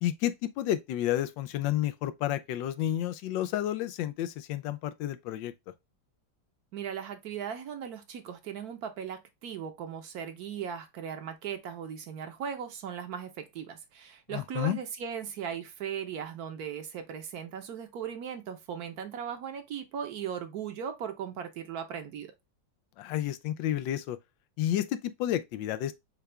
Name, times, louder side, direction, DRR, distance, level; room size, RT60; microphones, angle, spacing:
voice 1, 0.0-5.5 14.3-14.8 23.0-24.2 24.6-25.9, left 12 dB, 90° left, 1.3 m, -31 dB
voice 2, 6.7-22.3, right 8 dB, 60° right, 1.2 m, -38 dB
6.7 x 2.3 x 3.3 m
omnidirectional pair, 2.0 m